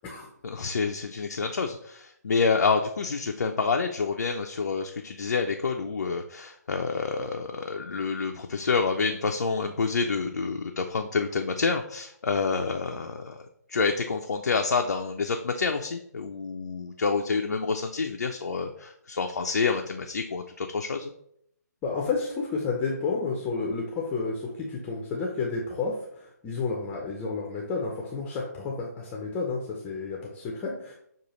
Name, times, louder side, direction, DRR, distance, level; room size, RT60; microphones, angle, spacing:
voice 1, 0.4-21.1, left 4 dB, 70° left, 3 dB, 0.4 m, -28 dB
voice 2, 21.8-30.9, left 4 dB, 15° left, -2 dB, 0.5 m, -31 dB
6.2 x 2.3 x 2.9 m, 0.70 s
figure-of-eight pair, 140°, 10 cm